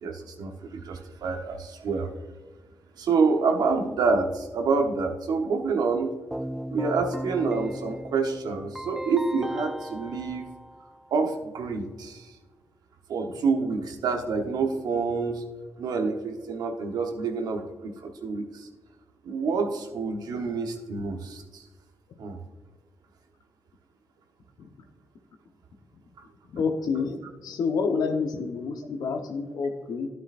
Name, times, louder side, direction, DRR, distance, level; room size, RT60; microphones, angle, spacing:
voice 1, 0.0-2.1 3.0-6.1 6.7-10.5 11.1-12.3 13.1-15.5 15.8-18.7 19.2-21.6 22.2-22.4 26.2-26.3, right 4 dB, 70° right, 5 dB, 1.1 m, -27 dB
Keyboard (musical), 6.3-11.3, equal, 5° right, 0.4 m, -37 dB
voice 2, 26.5-30.1, left 5 dB, 70° left, 6 dB, 1.1 m, -28 dB
11.5 x 9.9 x 2.6 m, 1.3 s
supercardioid pair, 45°, 7 cm